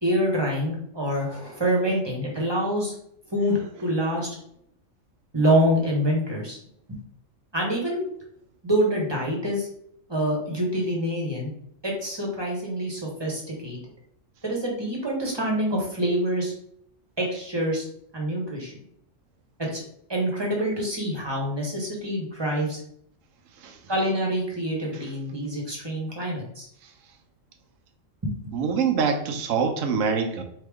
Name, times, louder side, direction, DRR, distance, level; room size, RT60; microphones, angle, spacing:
voice 1, 0.0-2.9 3.3-4.3 5.3-6.6 6.9-7.0 7.5-8.0 8.6-9.7 10.1-11.5 11.8-13.8 14.4-16.5 17.2-17.9 18.1-18.8 19.6-19.8 20.1-22.8 23.9-26.7 28.2-28.5, equal, 20° right, -2 dB, 1.1 m, -26 dB
voice 2, 28.5-30.4, right 6 dB, 80° right, 6 dB, 1.1 m, -24 dB
4.4 x 3.3 x 3.5 m, 0.69 s
omnidirectional pair, 1.3 m